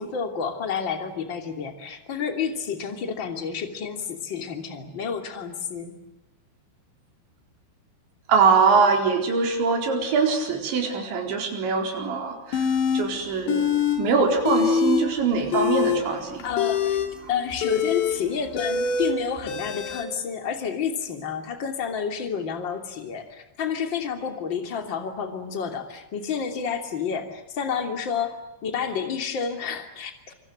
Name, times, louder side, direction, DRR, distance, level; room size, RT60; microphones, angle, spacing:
voice 1, 0.0-6.0 16.4-17.0 17.3-30.3, left 7 dB, 30° left, 6 dB, 2.9 m, -30 dB
voice 2, 8.3-12.7 12.9-13.7 14.0-16.5, right 5 dB, 80° right, 4 dB, 6.7 m, -22 dB
sound 1, 12.5-13.0 13.5-14.0 14.3-15.0 15.4-20.0, left 6 dB, 75° left, 5.1 m, -24 dB
27.0 x 25.0 x 8.0 m, 0.91 s
omnidirectional pair, 5.2 m